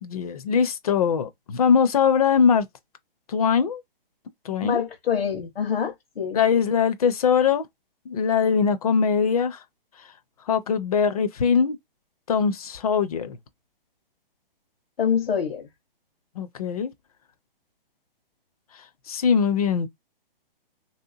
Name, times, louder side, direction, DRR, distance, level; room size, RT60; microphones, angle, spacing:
voice 1, 0.0-2.7 3.3-3.8 4.4-4.8 6.3-7.7 8.1-9.6 10.5-11.8 12.3-13.4 16.4-16.9 19.1-19.9, left 6 dB, 40° left, 0.5 m, -21 dB
voice 2, 4.6-6.4 15.0-15.7, left 7 dB, 85° left, 1.2 m, -26 dB
3.2 x 2.8 x 2.7 m
hypercardioid pair, 165°, 29 cm